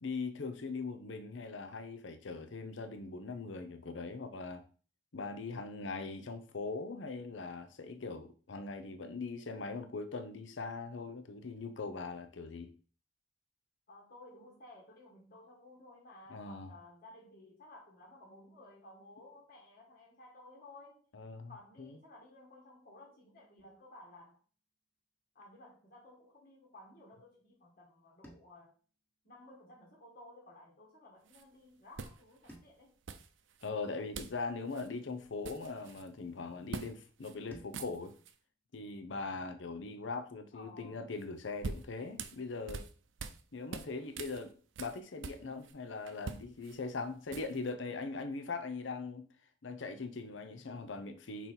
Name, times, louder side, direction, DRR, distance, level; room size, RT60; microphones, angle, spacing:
voice 1, 0.0-4.7 5.1-12.7 16.3-16.7 21.1-21.5 21.8-22.0 33.6-38.1 38.7-42.9 43.5-44.5 44.8-49.3 49.6-51.5, left 4 dB, 80° left, 0.7 m, -41 dB
voice 2, 13.9-21.0 21.5-24.4 25.3-28.7 29.2-32.9 40.5-41.0, left 2 dB, 50° left, 1.6 m, -56 dB
sound 1, 23.6-25.8 28.2-30.6 32.5-35.0 37.5-40.0, equal, 10° left, 1.3 m, -63 dB
sound 2, 31.3-31.4 32.0-32.6 33.1-33.7 34.1-34.4 34.7-34.9 35.2-36.1 36.7-36.9 37.2-37.4 37.6-38.3 41.2-43.4 43.7-45.7 46.1-47.7, right 4 dB, 90° right, 0.6 m, -44 dB
5.6 x 4.1 x 4.4 m
head